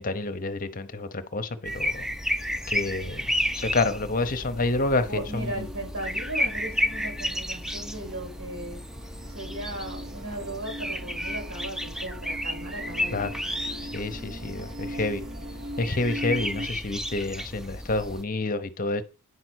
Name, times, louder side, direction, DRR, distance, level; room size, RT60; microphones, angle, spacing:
voice 1, 0.0-2.1 2.7-5.7 13.1-13.3 13.9-15.2 15.8-19.0, left 2 dB, 40° left, 0.8 m, -28 dB
sound 1, 1.6-18.2, left 1 dB, ahead, 0.4 m, -32 dB
sound 2, 4.8-16.7, equal, 45° right, 1.0 m, -41 dB
voice 2, 5.1-8.8 9.3-13.2, right 1 dB, 70° right, 4.1 m, -37 dB
9.7 x 5.4 x 6.3 m
head